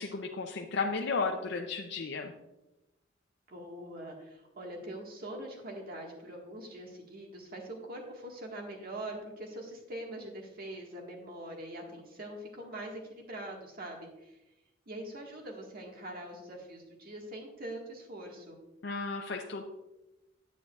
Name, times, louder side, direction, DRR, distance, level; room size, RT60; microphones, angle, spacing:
voice 1, 0.0-2.3 18.8-19.6, left 4 dB, 65° left, 2 dB, 0.6 m, -34 dB
voice 2, 3.5-14.4 14.8-18.6, right 1 dB, 50° right, 1 dB, 1.7 m, -43 dB
9.5 x 9.2 x 2.4 m, 0.96 s
head